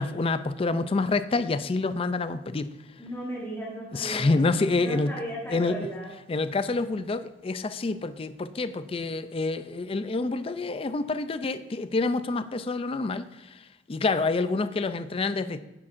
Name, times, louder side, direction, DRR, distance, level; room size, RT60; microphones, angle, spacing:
voice 1, 0.0-2.7 3.9-5.1 5.5-5.9 6.3-13.6 13.9-15.6, left 3 dB, 30° left, 12 dB, 0.4 m, -27 dB
voice 2, 3.0-6.1, right 1 dB, 10° left, -5 dB, 1.6 m, -36 dB
10.5 x 9.6 x 2.6 m, 1.0 s
head